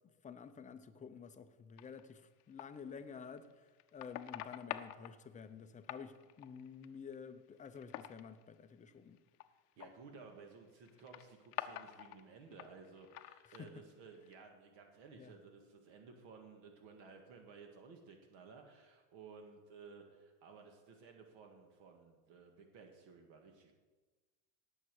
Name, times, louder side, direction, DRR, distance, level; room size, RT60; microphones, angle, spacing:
voice 1, 0.0-9.2 13.5-13.8 15.2-15.3, left 6 dB, 15° left, 0.6 m, -51 dB
sound 1, 1.8-2.7 3.3-5.1 5.8-7.1 7.6-8.4 9.2-9.4 9.7-9.9 10.8-12.2 12.5-13.7 14.1-14.3, left 14 dB, 85° left, 0.9 m, -46 dB
voice 2, 9.8-23.7, right 5 dB, 60° right, 1.9 m, -56 dB
18.0 x 7.4 x 4.8 m
supercardioid pair, 130°, 45 cm